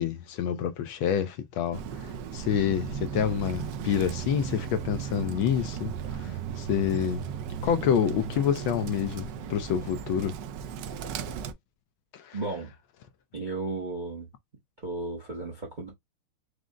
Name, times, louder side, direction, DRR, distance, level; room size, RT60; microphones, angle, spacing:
voice 1, 0.0-7.3 7.6-10.4 12.1-12.4, left 8 dB, 75° left, 1.3 m, -28 dB
Bird, 1.7-11.5, right 7 dB, 75° right, 1.0 m, -36 dB
voice 2, 12.3-12.7 13.3-14.3 14.8-15.9, right 3 dB, 40° right, 0.6 m, -34 dB
5.0 x 2.0 x 3.6 m
omnidirectional pair, 2.4 m